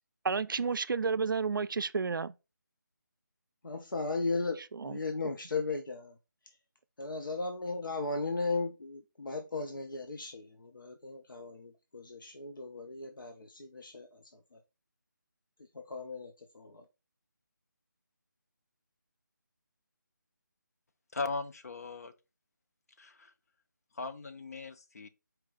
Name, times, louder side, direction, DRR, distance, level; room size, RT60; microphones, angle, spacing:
voice 1, 0.2-2.3 4.7-5.0, right 5 dB, 85° right, 0.4 m, -31 dB
voice 2, 3.6-6.1 7.0-14.2 14.5-14.6 15.7-16.8, left 3 dB, 90° left, 0.7 m, -36 dB
voice 3, 21.1-22.1 23.0-23.3 24.0-25.1, left 3 dB, 50° left, 0.5 m, -38 dB
4.5 x 2.5 x 3.7 m
figure-of-eight pair, 170°, 11 cm